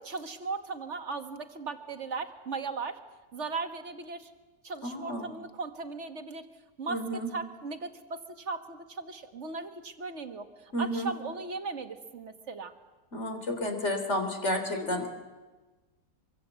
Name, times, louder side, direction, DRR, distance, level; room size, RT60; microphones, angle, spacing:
voice 1, 0.0-3.0 3.3-4.3 4.6-6.5 6.8-12.7 14.7-15.1, right 4 dB, 50° right, 8 dB, 1.8 m, -37 dB
voice 2, 4.8-5.3 6.9-7.3 10.7-11.1 13.1-15.1, equal, 45° left, 5 dB, 3.9 m, -31 dB
25.0 x 23.5 x 8.3 m, 1.2 s
omnidirectional pair, 1.7 m